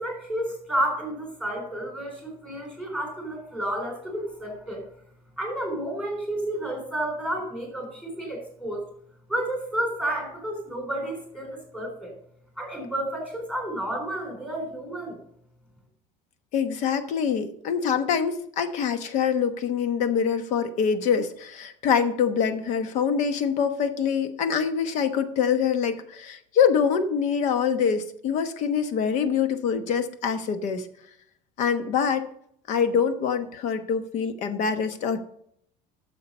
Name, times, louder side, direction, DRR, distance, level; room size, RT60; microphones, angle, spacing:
voice 1, 0.0-4.8 5.4-8.8 9.3-12.1 12.6-15.2, right 1 dB, 5° left, 1 dB, 3.7 m, -31 dB
voice 2, 16.5-30.9 31.6-32.3 32.7-35.2, left 7 dB, 50° left, 10 dB, 1.1 m, -25 dB
10.0 x 7.0 x 5.4 m, 0.69 s
cardioid pair, 165°, 15 cm